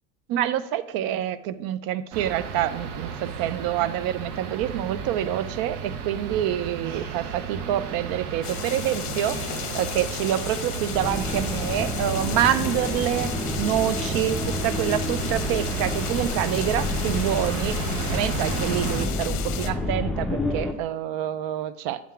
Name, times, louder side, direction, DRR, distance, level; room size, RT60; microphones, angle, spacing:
voice 1, 0.3-13.3 13.6-22.0, right 11 dB, 55° right, 15 dB, 0.6 m, -27 dB
sound 1, 2.1-19.1, right 6 dB, 85° right, 0.9 m, -33 dB
sound 2, 8.4-19.7, left 10 dB, 40° left, 0.8 m, -34 dB
sound 3, 10.9-20.7, left 2 dB, ahead, 0.6 m, -30 dB
8.6 x 3.6 x 5.7 m, 0.93 s
supercardioid pair, 100°, 43 cm